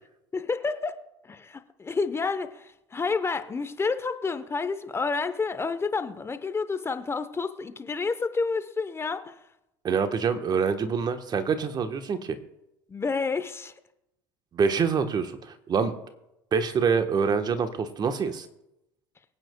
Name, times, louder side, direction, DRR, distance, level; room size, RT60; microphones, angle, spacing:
voice 1, 0.3-0.9 1.2-9.3 12.9-13.7, left 4 dB, 20° left, 10 dB, 0.9 m, -29 dB
voice 2, 9.8-12.4 14.5-15.9 16.5-18.4, right 6 dB, 35° right, 8 dB, 1.2 m, -26 dB
24.0 x 9.0 x 2.3 m, 0.86 s
hypercardioid pair, 80°, 12 cm